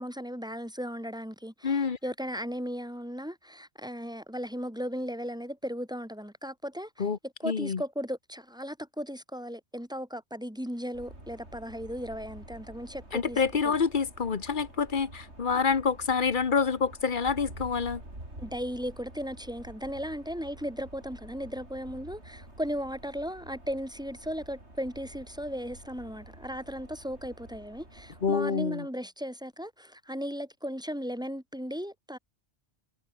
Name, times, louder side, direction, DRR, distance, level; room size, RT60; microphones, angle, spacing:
voice 1, 0.0-6.9 7.4-13.4 18.4-32.2, equal, 5° right, 2.4 m, -36 dB
voice 2, 1.6-2.0 7.0-7.2 7.4-7.8 13.1-18.0 28.2-28.9, left 5 dB, 50° left, 1.2 m, -27 dB
sound 1, 10.9-28.3, right 1 dB, 85° right, 7.5 m, -49 dB
omnidirectional pair, 1.1 m